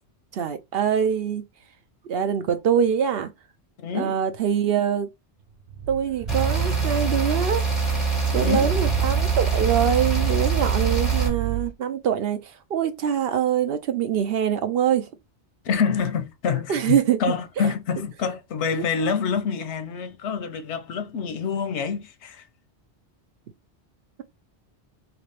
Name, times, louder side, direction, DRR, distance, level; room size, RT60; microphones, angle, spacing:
voice 1, 0.3-1.4 2.1-3.3 3.9-5.1 5.9-7.6 8.3-15.1 16.7-17.2 18.7-18.8, right 8 dB, 65° right, 0.8 m, -24 dB
voice 2, 3.8-4.2 8.4-8.7 15.6-22.5, left 6 dB, 85° left, 1.0 m, -27 dB
sound 1, 5.6-11.7, right 12 dB, 85° right, 1.0 m, -29 dB
sound 2, 6.3-11.3, right 4 dB, ahead, 2.0 m, -24 dB
2.9 x 2.9 x 3.2 m
omnidirectional pair, 1.1 m